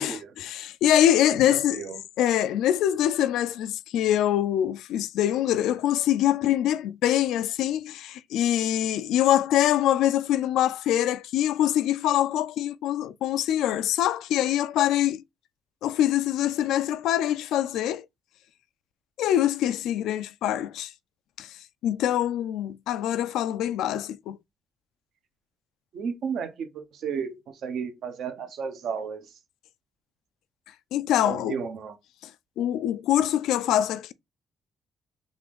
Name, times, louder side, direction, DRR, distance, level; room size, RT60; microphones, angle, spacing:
voice 1, 0.0-1.8 2.2-15.2 15.8-18.1 19.2-20.9 21.4-24.4 30.9-31.6 32.2-32.3 32.6-34.1, left 11 dB, 85° left, 0.3 m, -24 dB
voice 2, 1.5-2.0 25.9-27.4 27.6-29.3 31.2-31.9, right 6 dB, 70° right, 0.8 m, -33 dB
3.5 x 2.5 x 3.5 m
cardioid pair, 90°, 0 cm